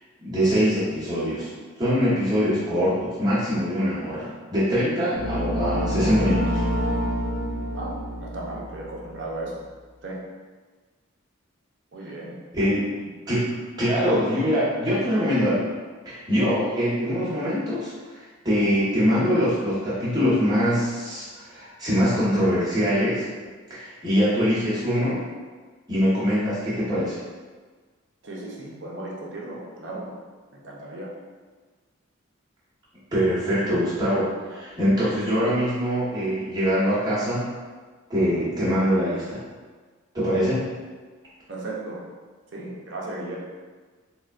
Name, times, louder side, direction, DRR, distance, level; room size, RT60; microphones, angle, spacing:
voice 1, 0.2-1.5 1.8-6.6 12.5-12.8 13.3-15.6 16.0-23.2 23.7-25.2 25.9-27.2 33.1-37.5 38.1-39.4 40.1-40.7, equal, 20° right, -11 dB, 1.0 m, -23 dB
sound 1, 5.1-9.1, equal, ahead, 0.6 m, -27 dB
voice 2, 7.7-9.6 10.0-10.2 11.9-12.3 12.6-12.7 28.2-30.1 30.5-31.1 41.5-42.0 42.5-43.4, right 2 dB, 55° right, -3 dB, 0.6 m, -35 dB
3.8 x 2.1 x 2.4 m, 1.4 s
head